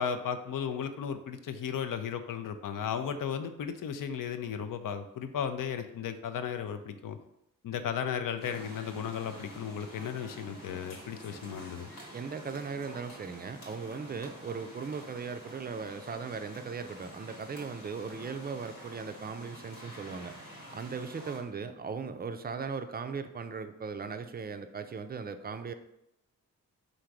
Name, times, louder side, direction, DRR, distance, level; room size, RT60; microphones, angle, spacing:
voice 1, 0.0-7.2 7.6-11.9, left 7 dB, 60° left, 8 dB, 0.5 m, -35 dB
sound 1, 8.4-21.4, equal, 80° left, 1.4 m, -48 dB
voice 2, 12.1-20.3 20.7-25.7, right 5 dB, 25° right, 8 dB, 0.4 m, -38 dB
3.7 x 2.6 x 4.6 m, 0.82 s
cardioid pair, 50°, 36 cm